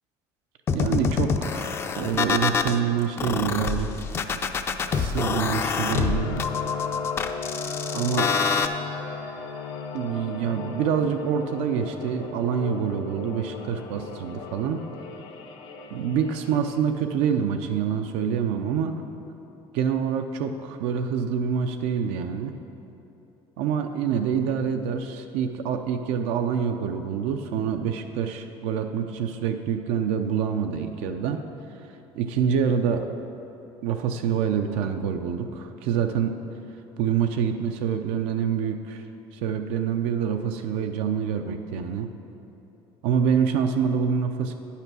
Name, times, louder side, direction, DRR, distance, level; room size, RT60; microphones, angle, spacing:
sound 1, 0.7-2.8 3.2-8.7, left 5 dB, 25° left, 0.3 m, -26 dB
voice 1, 0.7-3.9 4.9-6.4 7.9-8.3 9.9-14.8 15.9-19.0 19.7-22.5 23.6-31.4 32.1-33.2 33.8-36.3 37.0-39.0 39.3-42.1 43.0-44.5, right 7 dB, 85° right, 6 dB, 0.5 m, -26 dB
sound 2, 4.8-16.8, left 5 dB, 60° left, 0.8 m, -36 dB
9.0 x 5.7 x 6.1 m, 2.9 s
cardioid pair, 165°, 10 cm